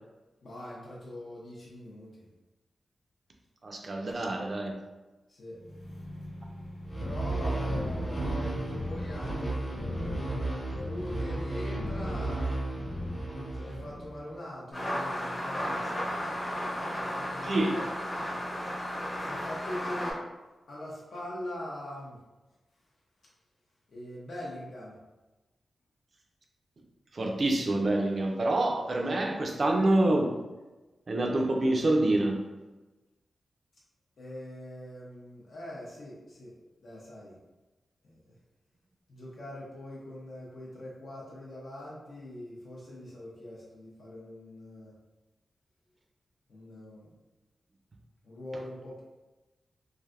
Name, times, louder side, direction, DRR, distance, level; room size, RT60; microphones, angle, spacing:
voice 1, 0.4-2.3 5.3-5.6 6.9-12.6 13.5-16.2 16.9-17.9 19.1-20.2 20.7-22.2 23.9-25.0 34.2-36.5 36.8-37.4 38.0-38.3 39.1-44.9 46.5-47.1 48.2-49.0, left 1 dB, 65° left, -6 dB, 0.6 m, -42 dB
voice 2, 3.6-4.7 17.4-17.8 27.1-30.4 31.1-32.5, right 1 dB, 40° right, 1 dB, 0.4 m, -26 dB
sound 1, 5.5-9.2, equal, 85° left, 1.1 m, -44 dB
sound 2, 6.9-14.3, right 1 dB, 35° left, 1.1 m, -33 dB
sound 3, 14.7-20.1, equal, 20° left, 0.7 m, -34 dB
3.2 x 2.5 x 2.4 m, 1.1 s
wide cardioid pair, 170°, 0 cm